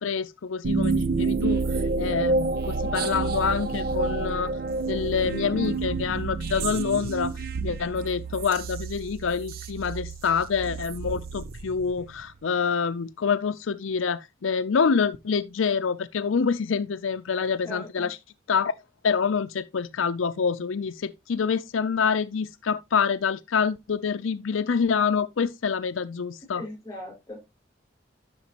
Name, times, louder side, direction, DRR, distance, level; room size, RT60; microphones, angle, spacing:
voice 1, 0.0-4.6 4.9-7.3 7.6-18.2 18.5-18.7 19.0-26.6, left 6 dB, 90° left, 0.5 m, -26 dB
sound 1, 0.6-12.2, right 3 dB, 50° right, 0.5 m, -29 dB
voice 2, 17.6-18.1 26.5-27.5, left 1 dB, 15° left, 5.8 m, -39 dB
11.5 x 6.3 x 2.9 m
head